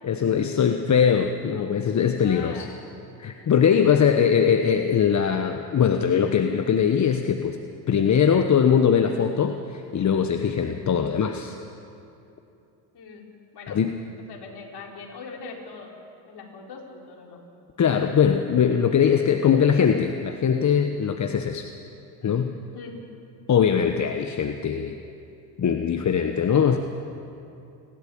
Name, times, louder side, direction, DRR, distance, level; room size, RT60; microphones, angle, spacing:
voice 1, 0.0-2.7 3.2-7.6 7.9-11.6 13.7-13.9 17.8-21.7 22.2-22.5 23.5-25.0 25.6-26.8, left 7 dB, 35° left, 6 dB, 1.1 m, -21 dB
voice 2, 2.2-2.8 12.9-13.3 13.5-13.8 14.3-15.9 16.2-17.4 22.7-23.0, left 4 dB, 55° left, 0 dB, 4.3 m, -41 dB
28.5 x 12.5 x 8.7 m, 2.7 s
hypercardioid pair, 70°, 47 cm